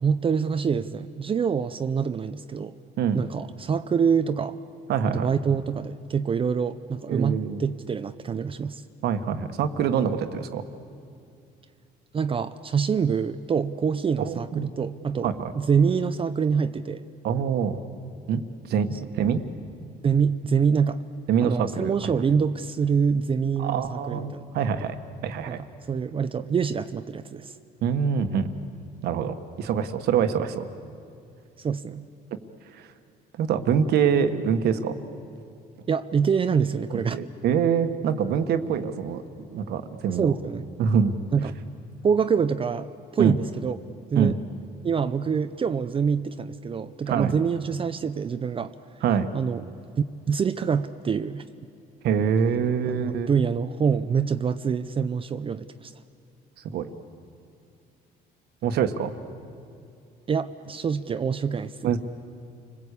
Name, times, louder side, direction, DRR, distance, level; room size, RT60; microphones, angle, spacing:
voice 1, 0.0-2.8 3.1-4.5 5.1-8.8 12.1-17.0 18.9-19.0 20.0-21.0 21.4-24.5 25.5-25.6 25.9-27.5 31.6-32.1 35.9-37.2 40.2-40.7 41.3-41.5 42.0-43.8 44.1-44.4 44.8-48.7 49.3-49.6 50.0-51.4 52.8-55.9 60.3-62.0, right 6 dB, 30° right, 11 dB, 0.6 m, -25 dB
voice 2, 4.9-5.3 7.1-7.6 9.0-10.6 14.2-14.7 15.2-15.5 17.2-17.8 18.3-18.4 18.7-18.9 19.1-19.4 21.3-21.9 23.6-25.0 25.2-25.6 27.8-28.5 29.0-30.6 32.7-32.9 33.4-35.0 37.1-39.2 39.5-40.4 40.8-41.2 43.2-43.3 44.1-44.4 47.1-47.3 49.0-49.3 52.0-53.3 56.6-56.9 58.6-59.1 61.8-62.0, right 7 dB, 70° right, 9 dB, 1.5 m, -25 dB
30.0 x 21.0 x 8.4 m, 2.5 s
cardioid pair, 110°, 17 cm